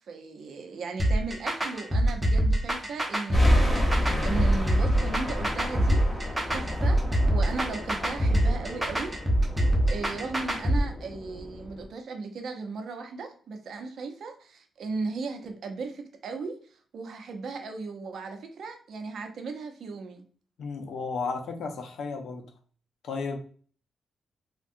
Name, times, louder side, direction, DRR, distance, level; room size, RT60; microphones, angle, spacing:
voice 1, 0.1-7.0 7.3-9.1 9.9-16.6 16.9-20.2, right 4 dB, 70° right, 0.6 m, -36 dB
sound 1, 1.0-10.8, right 1 dB, 20° right, 0.8 m, -24 dB
sound 2, 3.3-11.9, equal, 10° left, 0.9 m, -30 dB
voice 2, 20.6-22.5 23.0-23.4, left 4 dB, 80° left, 0.5 m, -33 dB
3.5 x 2.2 x 2.6 m
cardioid pair, 75°, 0 cm